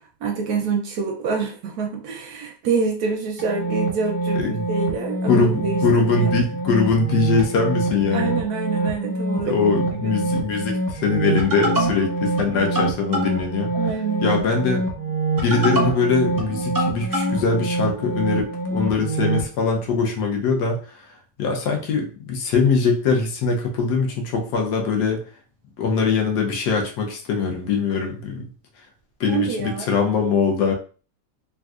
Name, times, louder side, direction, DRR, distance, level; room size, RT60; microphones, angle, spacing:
voice 1, 0.0-6.3 8.1-9.7 10.0-10.3 13.7-14.4 29.3-29.9, right 5 dB, 70° right, 2 dB, 1.0 m, -26 dB
sound 1, 3.4-19.5, right 2 dB, 20° right, 0.5 m, -25 dB
voice 2, 4.3-4.7 5.2-8.3 9.4-13.7 14.2-14.9 15.4-21.1 21.4-25.2 25.8-28.5 29.2-30.7, left 4 dB, 70° left, 1 dB, 1.3 m, -22 dB
3.6 x 2.6 x 2.3 m, 0.39 s
omnidirectional pair, 1.9 m